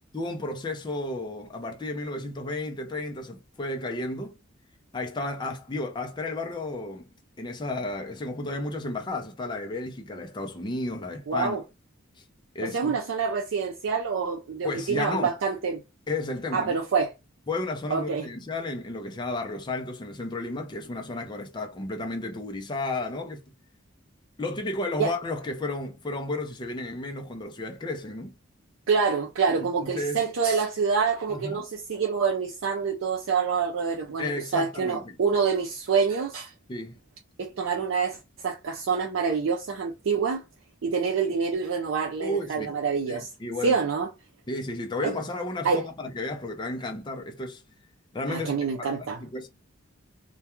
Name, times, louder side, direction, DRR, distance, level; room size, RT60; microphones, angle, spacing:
voice 1, 0.1-4.3 4.9-7.1 7.4-11.6 12.2-12.3 12.5-13.0 14.6-15.4 16.1-16.8 17.5-23.4 24.4-28.3 29.5-30.2 31.3-31.6 34.2-35.2 36.7-37.0 42.2-42.7 43.1-43.8 44.5-47.6 48.1-48.5 48.8-49.5, left 2 dB, 20° left, 0.5 m, -33 dB
voice 2, 11.3-11.6 12.6-15.8 16.5-17.1 17.9-18.3 25.0-25.1 28.9-36.5 37.4-38.2 38.4-40.4 40.8-43.3 43.6-44.1 45.0-45.1 45.6-45.8 48.3-49.2, right 5 dB, 75° right, 0.4 m, -26 dB
2.2 x 2.2 x 2.9 m
head